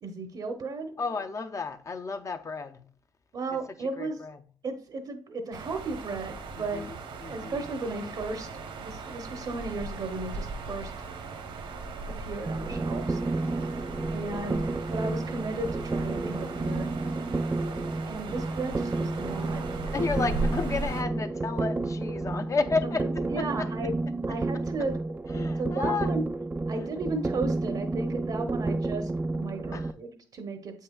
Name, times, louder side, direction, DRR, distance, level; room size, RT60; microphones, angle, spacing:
voice 1, 0.0-0.9 3.3-4.2 4.6-6.8 7.3-10.9 12.2-13.2 14.1-16.9 18.1-19.6 22.8-23.9 24.3-25.0 25.6-26.3 26.7-30.8, right 3 dB, 55° right, 0.8 m, -35 dB
voice 2, 1.0-2.8 3.5-3.6 4.0-4.4 6.6-7.0 7.2-7.6 14.4-14.6 17.4-17.9 19.9-23.1 23.4-23.7 25.3-26.1 29.7-29.9, left 4 dB, 35° left, 0.6 m, -32 dB
sound 1, 5.5-21.0, right 3 dB, 75° right, 1.1 m, -38 dB
sound 2, 12.5-29.9, right 2 dB, 20° right, 0.3 m, -31 dB
7.6 x 5.5 x 2.3 m
cardioid pair, 80°, 9 cm